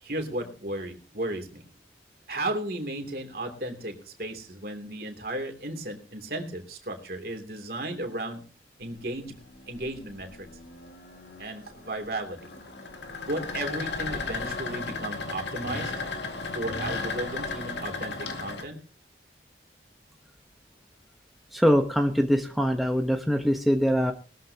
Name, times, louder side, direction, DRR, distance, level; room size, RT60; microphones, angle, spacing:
voice 1, 0.0-1.7 2.3-8.4 8.8-9.3 9.7-10.5 11.4-12.5 13.3-15.9 16.5-18.8, right 1 dB, 55° right, 5 dB, 2.9 m, -34 dB
sound 1, 8.8-18.6, left 3 dB, 85° left, 2.0 m, -35 dB
voice 2, 21.5-24.1, equal, ahead, 3 dB, 1.0 m, -23 dB
20.0 x 13.0 x 2.9 m, 0.35 s
head